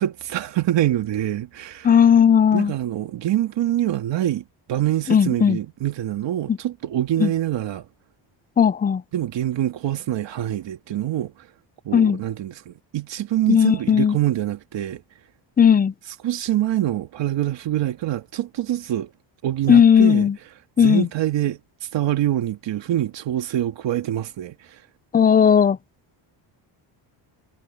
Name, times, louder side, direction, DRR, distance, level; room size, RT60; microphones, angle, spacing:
voice 1, 0.0-1.9 2.5-4.4 4.7-7.9 9.1-11.5 11.9-15.0 16.2-19.1 19.4-20.3 20.8-24.8, right 12 dB, 65° right, 2.1 m, -25 dB
voice 2, 1.8-2.7 5.1-5.6 6.5-6.6 7.2-7.3 8.6-9.0 11.9-12.2 13.5-14.2 15.6-15.9 19.7-20.4 20.8-21.1 25.1-25.8, left 8 dB, 20° left, 0.4 m, -16 dB
cardioid pair, 130°, 46 cm